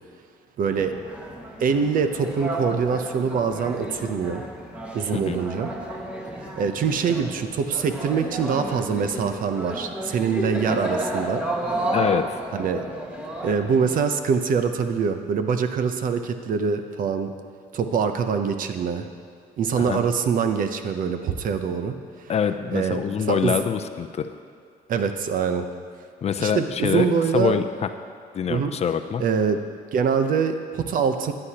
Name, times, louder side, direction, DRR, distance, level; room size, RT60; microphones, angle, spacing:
voice 1, 0.6-1.0 1.6-4.4 4.9-5.7 6.6-11.4 12.5-12.9 13.4-17.3 17.7-19.1 19.6-22.3 22.7-23.6 24.9-25.7 26.4-27.6 28.5-28.7 29.2-29.6 29.9-31.3, right 6 dB, 55° right, 8 dB, 0.8 m, -24 dB
sound 1, 0.7-14.0, right 1 dB, 10° right, 1.7 m, -32 dB
voice 2, 11.9-12.4 19.8-20.0 22.3-24.3 26.2-27.1 27.3-27.9 28.3-29.2, left 7 dB, 40° left, 8 dB, 0.5 m, -25 dB
14.5 x 9.8 x 2.9 m, 2.3 s
cardioid pair, 110°, 17 cm